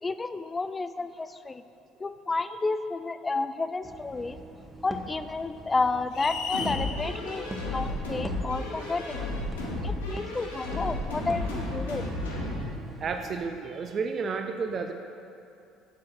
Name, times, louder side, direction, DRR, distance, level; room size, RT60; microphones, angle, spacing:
voice 1, 0.0-1.6 2.0-4.4 4.8-7.4 7.7-9.2 9.8-12.1, left 3 dB, 20° left, 12 dB, 0.4 m, -31 dB
sound 1, 3.8-13.6, right 1 dB, 15° right, 1.0 m, -43 dB
sound 2, 6.1-6.8, left 7 dB, 55° left, 0.9 m, -33 dB
sound 3, 6.5-12.7, left 2 dB, 80° left, 1.6 m, -33 dB
voice 2, 13.0-14.9, right 5 dB, 40° right, 6 dB, 0.5 m, -31 dB
9.9 x 7.1 x 4.4 m, 2.5 s
figure-of-eight pair, 60°, 0 cm